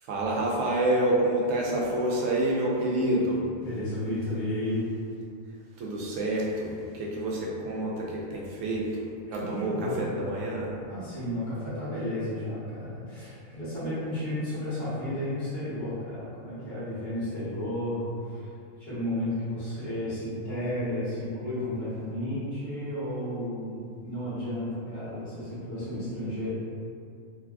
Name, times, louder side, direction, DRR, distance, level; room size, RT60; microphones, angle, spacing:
voice 1, 0.1-3.4 5.8-10.7, right 1 dB, 75° right, -3 dB, 0.9 m, -28 dB
voice 2, 3.6-4.8 9.4-10.3 10.9-26.5, left 1 dB, 50° left, -13 dB, 1.4 m, -33 dB
3.1 x 2.3 x 2.3 m, 2.4 s
omnidirectional pair, 1.4 m